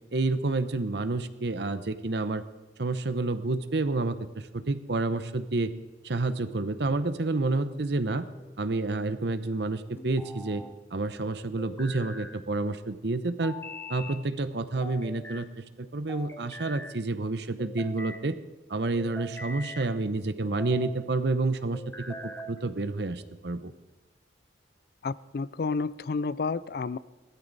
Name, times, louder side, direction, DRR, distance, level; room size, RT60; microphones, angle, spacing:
voice 1, 0.1-2.4 2.8-5.7 6.0-8.3 8.6-10.6 10.9-13.6 13.9-18.4 18.7-21.8 22.1-23.7, right 2 dB, 65° right, 12 dB, 0.8 m, -29 dB
sound 1, 7.9-8.6 10.0-10.7 11.6-12.4 13.4-14.2 14.8-15.5 16.1-17.0 17.6-18.2 19.0-19.9 20.4-21.0 21.7-22.6, left 1 dB, 10° left, 0.7 m, -42 dB
voice 2, 25.0-27.0, left 4 dB, 55° left, 18 dB, 0.4 m, -30 dB
16.5 x 14.0 x 4.0 m, 1.2 s
head